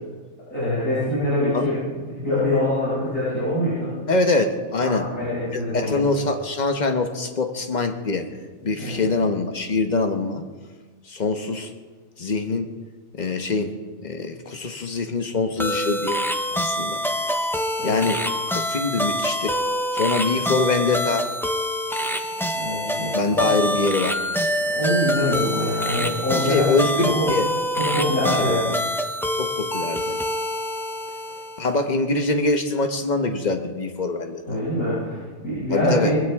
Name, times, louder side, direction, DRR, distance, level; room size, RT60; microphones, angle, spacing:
voice 1, 0.5-1.8 2.0-3.9 4.8-6.0 8.8-9.1 17.8-18.1 22.5-23.1 23.4-23.5 24.6-26.7 27.1-27.2 27.8-28.6 34.5-36.2, left 1 dB, 70° left, -12 dB, 7.0 m, -24 dB
voice 2, 4.1-5.1 5.5-8.3 8.6-10.4 11.1-11.7 12.2-12.7 13.1-13.7 14.0-16.2 16.5-17.0 17.8-18.2 18.5-19.6 19.9-21.3 22.3-22.4 23.1-24.2 26.3-27.5 28.4-28.7 29.4-30.2 31.6-34.6 35.7-36.1, left 3 dB, 35° left, 6 dB, 1.1 m, -24 dB
sound 1, 15.6-31.8, equal, 5° left, 0.5 m, -26 dB
21.0 x 16.0 x 3.6 m, 1.4 s
omnidirectional pair, 1.5 m